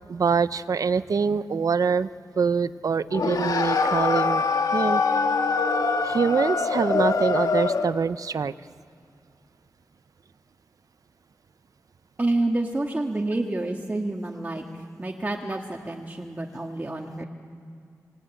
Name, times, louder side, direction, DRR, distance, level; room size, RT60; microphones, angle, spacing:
voice 1, 0.1-2.1 2.4-4.4 4.7-5.0 6.0-8.5, right 5 dB, 65° right, 15 dB, 0.7 m, -24 dB
sound 1, 3.1-8.0, left 4 dB, 85° left, 1.7 m, -24 dB
voice 2, 12.2-17.2, right 2 dB, 25° right, 1 dB, 1.8 m, -28 dB
27.0 x 19.5 x 9.1 m, 2.3 s
wide cardioid pair, 100°, 6 cm